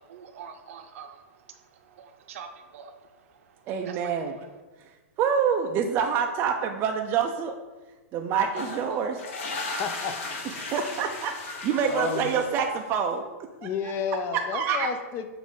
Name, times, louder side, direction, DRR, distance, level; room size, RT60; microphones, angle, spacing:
voice 1, 0.0-4.5, right 7 dB, 65° right, 6 dB, 0.7 m, -46 dB
voice 2, 3.7-4.4 5.2-7.5 8.1-9.2 10.6-13.2 14.3-14.9, right 7 dB, 25° right, 3 dB, 0.4 m, -26 dB
Toilet Flush, 8.5-13.0, left 3 dB, 55° left, 1.1 m, -36 dB
voice 3, 9.8-10.6 11.9-12.2 13.6-15.3, left 6 dB, 30° left, 9 dB, 0.5 m, -31 dB
7.1 x 2.5 x 5.2 m, 1.2 s
hypercardioid pair, 145°, 8 cm